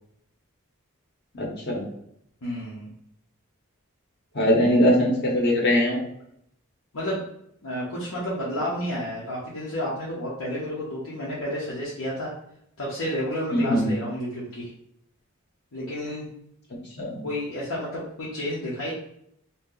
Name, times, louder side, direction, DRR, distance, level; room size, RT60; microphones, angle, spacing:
voice 1, 1.4-1.8 4.3-6.0 13.5-13.9 17.0-17.2, equal, 50° left, -2 dB, 0.9 m, -21 dB
voice 2, 2.4-2.9 6.9-7.2 7.6-12.3 12.8-14.7 15.7-16.3 17.2-18.9, equal, 80° left, -7 dB, 0.9 m, -31 dB
2.8 x 2.3 x 3.8 m, 0.73 s
head